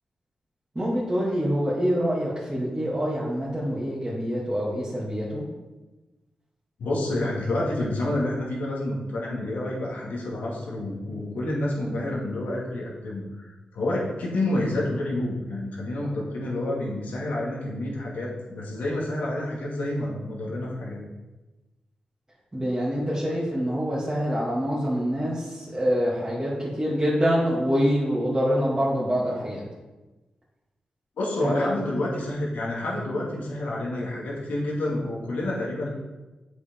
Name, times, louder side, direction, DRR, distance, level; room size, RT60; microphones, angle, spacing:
voice 1, 0.7-5.4 22.5-29.6 31.4-31.7, equal, 20° right, -8 dB, 2.4 m, -25 dB
voice 2, 6.8-21.0 31.2-35.9, left 1 dB, 90° left, -4 dB, 2.3 m, -29 dB
8.2 x 6.5 x 3.8 m, 1.1 s
cardioid pair, 65°, 3 cm